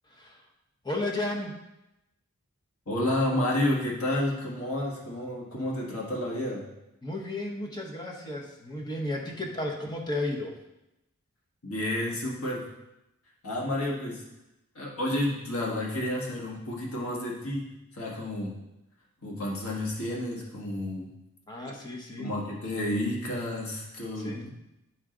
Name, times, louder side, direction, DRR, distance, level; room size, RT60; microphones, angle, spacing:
voice 1, 0.1-0.4 0.8-1.5 7.0-10.6 21.5-22.3 24.2-24.5, left 1 dB, 20° left, 0 dB, 0.9 m, -33 dB
voice 2, 2.9-6.6 11.6-12.7 13.4-14.2 14.7-18.6 19.2-21.1 22.2-24.5, left 1 dB, 75° left, -2 dB, 1.6 m, -30 dB
9.8 x 4.8 x 3.8 m, 0.91 s
head